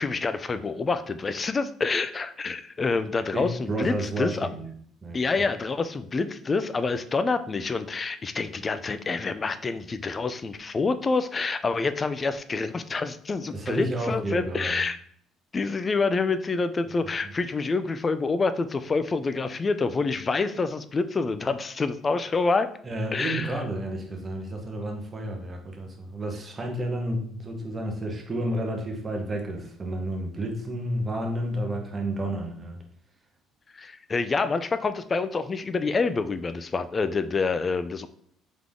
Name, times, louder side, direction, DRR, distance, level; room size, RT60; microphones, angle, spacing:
voice 1, 0.0-4.5 5.1-15.0 15.5-22.7 23.1-23.5 33.7-38.1, left 4 dB, 30° left, 11 dB, 0.3 m, -27 dB
voice 2, 3.3-4.7 5.0-5.2 13.5-14.8 17.2-17.3 22.8-32.8, right 1 dB, 25° right, 2 dB, 1.1 m, -31 dB
3.6 x 3.6 x 3.5 m, 0.62 s
cardioid pair, 100°, 0 cm